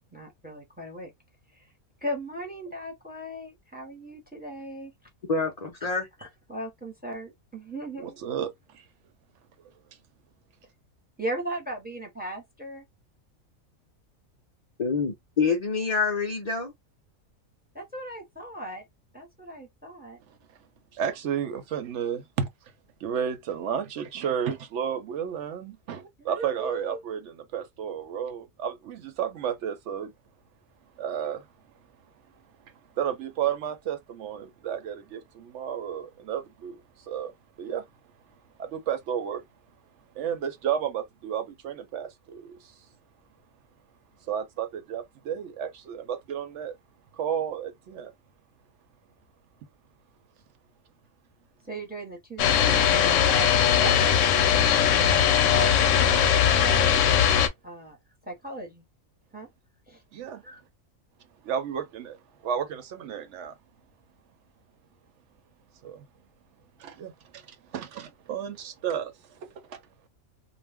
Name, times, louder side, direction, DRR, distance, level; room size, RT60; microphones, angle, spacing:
voice 1, 0.1-1.1 1.5-1.7 2.0-4.9 5.8-5.9 6.2-8.4 11.2-12.8 17.7-18.8 19.1-20.2 26.2-27.0 51.6-54.2 55.0-55.3 55.5-57.0 57.6-58.0 58.2-58.8 59.3-59.5 59.9-60.0 60.4-60.6, right 1 dB, 10° right, 0.8 m, -37 dB
voice 2, 5.3-6.1 14.8-16.7, left 4 dB, 55° left, 0.4 m, -26 dB
voice 3, 8.0-8.8 20.3-20.4 20.9-22.5 23.0-30.1 31.0-31.5 32.6-37.3 37.6-37.9 38.6-39.4 40.1-42.7 44.3-46.8 47.1-48.1 60.1-60.4 61.4-63.6 65.8-66.1 66.8-69.8, right 8 dB, 65° right, 0.8 m, -32 dB
sound 1, 52.4-57.5, left 8 dB, 70° left, 0.9 m, -20 dB
2.4 x 2.0 x 3.4 m
omnidirectional pair, 1.5 m